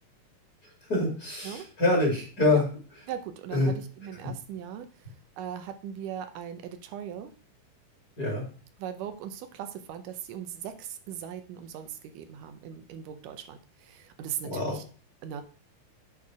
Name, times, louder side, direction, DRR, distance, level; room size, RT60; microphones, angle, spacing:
voice 1, 0.9-2.7 3.5-3.7 8.2-8.4 14.4-14.8, left 2 dB, 30° left, -2 dB, 2.6 m, -25 dB
voice 2, 3.1-4.9 5.4-7.3 8.8-14.8 15.2-15.4, right 9 dB, 80° right, 8 dB, 2.3 m, -39 dB
8.5 x 4.4 x 4.8 m, 0.38 s
omnidirectional pair, 3.7 m